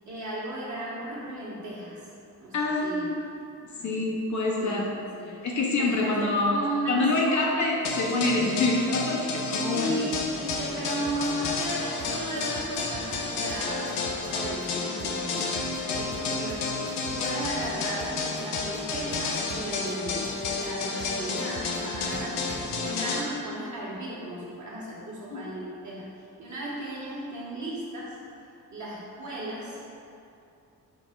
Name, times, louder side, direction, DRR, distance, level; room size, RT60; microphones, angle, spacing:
voice 1, 0.0-2.0 2.4-3.1 3.4-3.5 3.8-4.1 4.6-5.4 5.8-7.7 9.7-26.1 26.4-28.2 28.7-29.8, right 1 dB, 45° right, -7 dB, 1.4 m, -35 dB
voice 2, 2.5-3.2 3.8-4.9 5.4-6.6 6.9-9.9 25.3-25.5, left 2 dB, 45° left, -1 dB, 0.7 m, -26 dB
sound 1, 7.8-23.2, left 4 dB, 85° left, 0.5 m, -31 dB
sound 2, 8.3-22.9, right 3 dB, 30° right, 0.4 m, -44 dB
4.4 x 2.0 x 4.5 m, 2.7 s
supercardioid pair, 55°, 39 cm